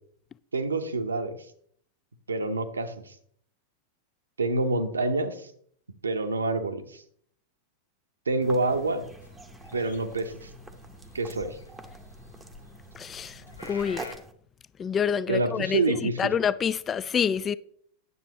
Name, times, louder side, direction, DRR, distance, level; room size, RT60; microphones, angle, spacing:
voice 1, 0.5-1.4 2.3-3.1 4.4-5.5 6.0-7.0 8.3-9.1 9.7-10.5 11.1-11.6 15.3-16.2, right 3 dB, 75° right, 0.8 m, -27 dB
sound 1, 8.4-14.3, right 2 dB, 10° right, 0.7 m, -46 dB
sound 2, 8.7-14.2, left 2 dB, 80° left, 0.9 m, -47 dB
voice 2, 13.0-13.4 13.7-14.0 14.8-17.5, left 7 dB, 25° left, 0.3 m, -27 dB
9.5 x 7.4 x 2.9 m
figure-of-eight pair, 90°, 0 cm